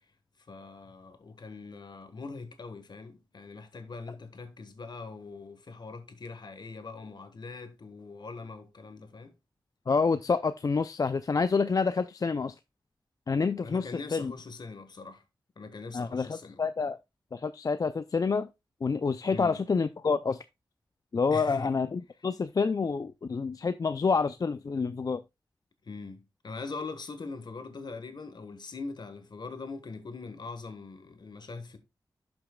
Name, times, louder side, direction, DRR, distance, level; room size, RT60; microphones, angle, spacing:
voice 1, 0.5-9.3 13.6-15.2 15.6-16.6 19.3-19.6 21.3-21.7 25.8-31.8, left 4 dB, 65° left, 1.4 m, -42 dB
voice 2, 9.9-12.5 13.3-14.3 15.9-17.0 17.3-18.5 18.8-20.4 21.1-25.2, left 4 dB, 50° left, 0.4 m, -28 dB
11.5 x 6.1 x 2.3 m
cardioid pair, 60°, 8 cm